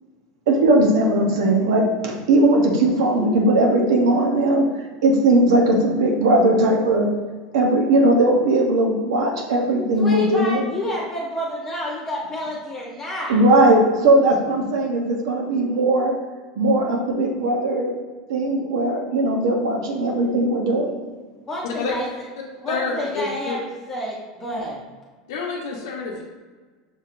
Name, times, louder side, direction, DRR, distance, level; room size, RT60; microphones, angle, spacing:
voice 1, 0.5-4.7 5.0-7.1 7.5-10.7 13.3-16.1 16.6-18.0 18.3-20.9, right 1 dB, 90° right, 0 dB, 0.8 m, -18 dB
voice 2, 10.0-13.4 21.5-22.0 22.6-23.6 23.9-24.8, equal, 20° left, -5 dB, 0.8 m, -29 dB
voice 3, 21.6-21.9 22.7-23.6 25.3-26.2, left 4 dB, 80° left, -3 dB, 0.7 m, -28 dB
6.2 x 2.8 x 2.5 m, 1.4 s
supercardioid pair, 135°, 2 cm